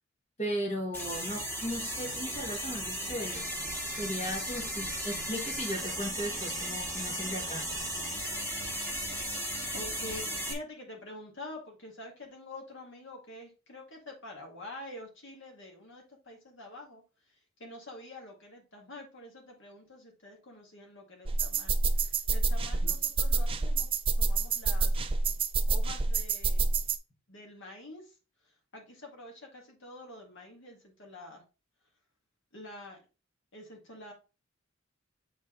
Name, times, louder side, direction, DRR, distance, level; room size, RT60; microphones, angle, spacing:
voice 1, 0.4-3.6 4.0-7.6 22.8-22.9, equal, 30° left, -1 dB, 1.8 m, -36 dB
sound 1, 0.9-10.5, right 1 dB, 10° left, 1.7 m, -36 dB
voice 2, 9.7-17.0 17.6-23.9 24.2-25.0 25.7-26.7 27.3-28.0 28.7-31.4 32.5-33.0 33.5-34.1, left 2 dB, 65° left, 1 dB, 2.1 m, -47 dB
sound 2, 21.3-27.0, right 3 dB, 25° right, 0.5 m, -28 dB
7.1 x 4.0 x 3.8 m, 0.31 s
head